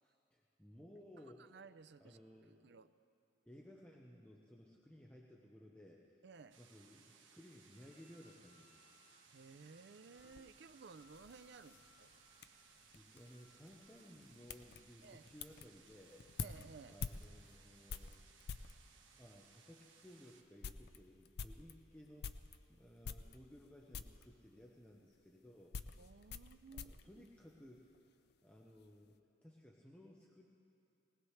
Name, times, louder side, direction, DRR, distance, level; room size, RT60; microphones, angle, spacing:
voice 1, 0.0-1.6 2.0-2.7 3.5-6.0 6.6-8.7 12.9-16.2 16.9-18.3 19.1-22.3 22.7-25.8 26.1-26.3 26.7-27.9 28.4-30.5, equal, 5° left, -2 dB, 0.8 m, -59 dB
voice 2, 1.5-2.2 2.5-2.9 6.2-6.6 9.3-12.1 15.0-15.2 16.4-17.0 26.0-27.2, right 4 dB, 60° right, 12 dB, 0.5 m, -57 dB
sound 1, 6.5-20.4, right 6 dB, 80° right, 1.5 m, -65 dB
Wind instrument woodwind instrument, 7.7-14.3, left 4 dB, 80° left, 3.2 m, -73 dB
sound 2, 10.1-18.8 19.5-19.6 20.0-20.1 20.4-22.6 23.0-23.7 23.9-24.3 25.1-28.0 28.3-28.9, left 5 dB, 55° left, 0.4 m, -49 dB
19.5 x 19.0 x 3.3 m, 2.8 s
head